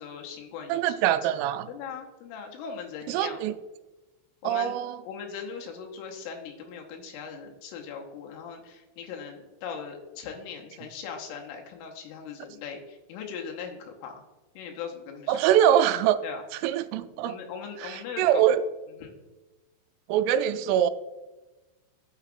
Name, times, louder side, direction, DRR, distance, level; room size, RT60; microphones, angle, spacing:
voice 1, 0.0-3.4 4.4-4.8 5.0-14.2 14.6-15.5 16.2-16.7 17.2-18.5 19.0-19.1, left 6 dB, 90° left, 2 dB, 3.6 m, -40 dB
voice 2, 0.7-1.7 3.1-3.5 4.4-5.0 15.3-16.2 16.6-17.4 17.8-18.6 20.1-20.9, right 11 dB, 85° right, 11 dB, 3.1 m, -23 dB
12.0 x 6.9 x 2.4 m, 1.1 s
omnidirectional pair, 5.7 m